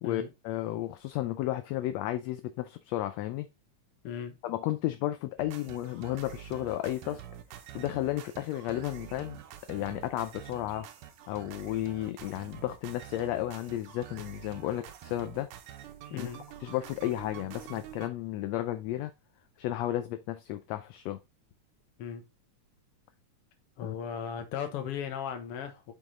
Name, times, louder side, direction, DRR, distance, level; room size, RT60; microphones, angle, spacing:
voice 1, 0.0-3.5 4.4-7.2 7.7-9.4 9.7-10.9 11.3-15.5 16.1-16.3 16.6-19.1 19.6-21.2 23.8-23.9, left 14 dB, 80° left, 1.6 m, -33 dB
voice 2, 4.0-4.4 16.1-16.4 22.0-22.3 23.8-25.9, left 8 dB, 60° left, 1.8 m, -37 dB
sound 1, 5.4-18.1, right 11 dB, 85° right, 2.3 m, -47 dB
6.1 x 5.5 x 3.7 m
omnidirectional pair, 3.4 m